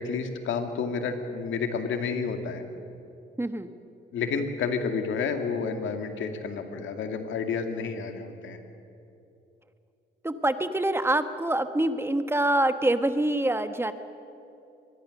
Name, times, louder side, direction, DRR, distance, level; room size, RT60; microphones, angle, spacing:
voice 1, 0.0-2.6 4.1-8.6, left 5 dB, 75° left, 6 dB, 2.3 m, -30 dB
voice 2, 3.4-3.7 10.2-13.9, right 1 dB, 10° right, 10 dB, 1.3 m, -25 dB
24.0 x 20.5 x 6.6 m, 2.7 s
cardioid pair, 90°, 20 cm